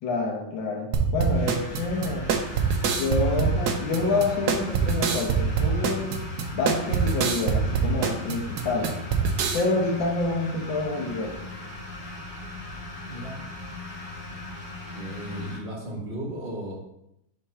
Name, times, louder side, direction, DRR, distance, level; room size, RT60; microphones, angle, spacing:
voice 1, 0.0-2.3 2.9-6.1 6.5-9.0 9.5-11.4 15.4-15.5, left 3 dB, 65° left, 1 dB, 1.7 m, -27 dB
sound 1, 0.9-9.6, right 6 dB, 70° right, 1.0 m, -25 dB
sound 2, 1.3-15.6, left 2 dB, 25° left, 2.0 m, -39 dB
voice 2, 14.9-16.8, right 1 dB, 30° right, -4 dB, 1.1 m, -35 dB
4.6 x 3.9 x 5.5 m, 0.81 s
omnidirectional pair, 2.3 m